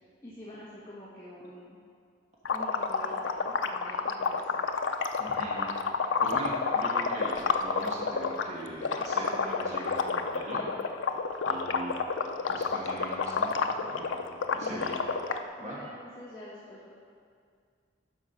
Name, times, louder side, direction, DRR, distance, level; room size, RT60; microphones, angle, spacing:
voice 1, 0.2-1.8 2.5-4.7 6.3-6.4 14.6-14.9 15.6-17.0, equal, 20° left, -9 dB, 1.3 m, -46 dB
sound 1, 2.4-8.4 8.8-15.4, left 5 dB, 90° left, 0.5 m, -29 dB
voice 2, 5.2-5.7 6.2-10.6 11.5-11.9 12.5-13.5 13.8-14.2 14.5-15.0 15.6-15.8, right 1 dB, 40° right, -5 dB, 1.4 m, -40 dB
12.0 x 4.8 x 5.7 m, 2.2 s
head